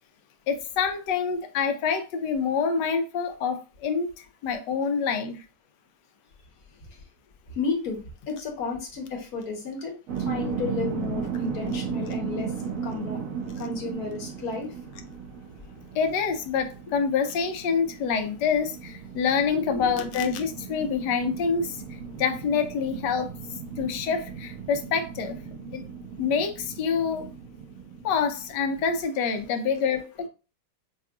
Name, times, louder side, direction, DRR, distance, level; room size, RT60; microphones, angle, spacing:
voice 1, 0.5-5.4 15.9-21.8 22.2-23.3 23.8-25.4 25.7-25.8 26.2-27.3 28.0-30.3, left 6 dB, 85° left, 1.2 m, -26 dB
voice 2, 7.5-9.9 10.2-12.5 12.8-13.2 13.6-14.7 19.5-20.0, left 4 dB, 65° left, 1.5 m, -32 dB
sound 1, 10.1-29.0, right 6 dB, 60° right, 1.1 m, -36 dB
5.6 x 2.4 x 2.3 m
omnidirectional pair, 1.8 m